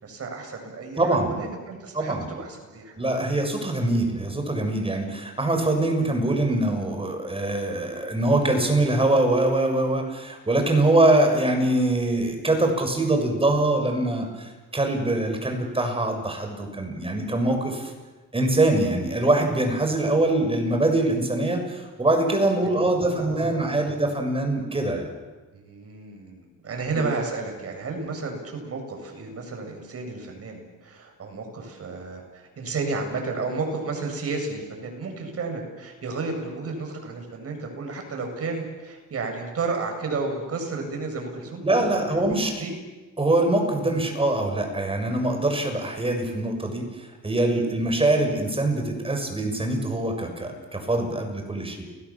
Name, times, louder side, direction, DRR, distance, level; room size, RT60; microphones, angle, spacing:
voice 1, 0.0-2.9 4.9-5.1 22.6-23.9 25.5-42.8, right 3 dB, 50° right, 3 dB, 7.7 m, -32 dB
voice 2, 1.0-1.3 1.9-2.3 3.0-17.9 18.3-25.1 41.6-42.5 43.2-51.8, right 2 dB, 20° right, 4 dB, 6.6 m, -23 dB
30.0 x 21.0 x 7.4 m, 1.3 s
cardioid pair, 90°, 30 cm